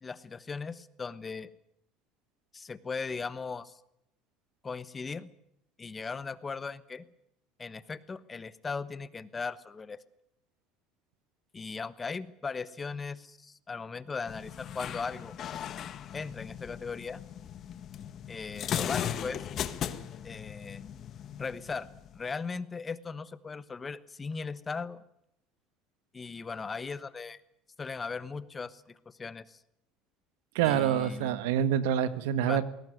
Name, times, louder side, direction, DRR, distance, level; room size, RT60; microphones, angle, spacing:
voice 1, 0.0-1.5 2.5-3.8 4.6-5.3 5.8-7.0 7.6-10.0 11.5-15.3 16.1-17.2 18.3-19.5 20.2-20.9 21.4-21.9 22.1-25.0 26.1-27.4 27.8-29.6 30.6-31.4 32.4-32.6, left 4 dB, 20° left, 15 dB, 1.1 m, -38 dB
sound 1, 14.3-22.3, left 9 dB, 40° left, 1.5 m, -38 dB
voice 2, 30.6-32.6, right 10 dB, 90° right, 13 dB, 1.7 m, -26 dB
21.0 x 18.0 x 9.4 m, 0.77 s
cardioid pair, 135°, 0 cm